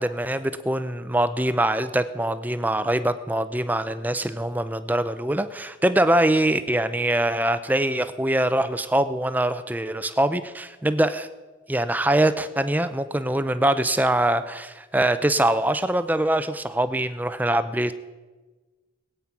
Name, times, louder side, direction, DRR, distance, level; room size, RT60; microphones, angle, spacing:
voice 1, 0.0-11.3 11.7-17.9, right 1 dB, 10° right, 12 dB, 0.5 m, -23 dB
19.5 x 8.9 x 5.9 m, 1.3 s
head